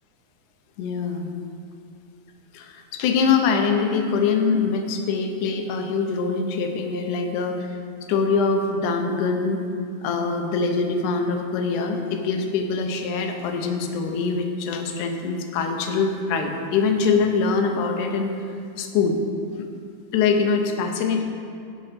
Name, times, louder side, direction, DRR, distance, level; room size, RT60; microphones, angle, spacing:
voice 1, 0.8-1.3 2.5-7.8 8.1-9.6 10.0-19.2 19.6-19.7 20.1-21.2, left 5 dB, 90° left, 4 dB, 2.3 m, -23 dB
9.2 x 5.5 x 5.8 m, 2.4 s
omnidirectional pair, 3.5 m